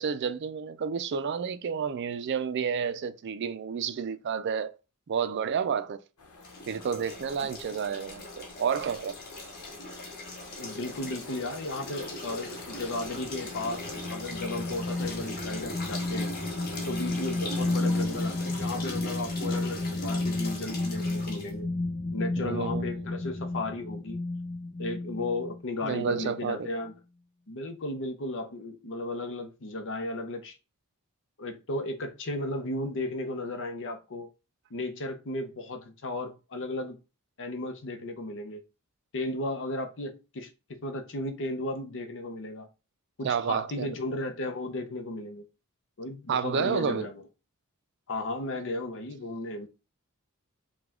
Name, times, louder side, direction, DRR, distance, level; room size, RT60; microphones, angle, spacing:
voice 1, 0.0-4.7 5.1-6.0 6.7-9.2 22.4-22.9 25.8-26.7 43.2-43.9 46.3-47.1, right 6 dB, 50° right, 0.4 m, -30 dB
sound 1, 6.2-19.0, left 3 dB, 80° left, 1.0 m, -47 dB
sound 2, 6.4-21.5, left 1 dB, 45° left, 1.1 m, -40 dB
voice 2, 10.6-16.3 16.9-21.7 22.1-24.2 24.8-26.9 27.5-30.6 31.4-34.3 34.7-37.0 37.4-38.6 39.1-40.5 40.8-42.7 43.2-45.4 46.0-47.2 48.1-49.7, left 2 dB, 60° left, 0.7 m, -35 dB
sound 3, 12.7-25.6 26.1-26.2, left 2 dB, 20° left, 1.2 m, -32 dB
4.8 x 2.3 x 3.6 m
head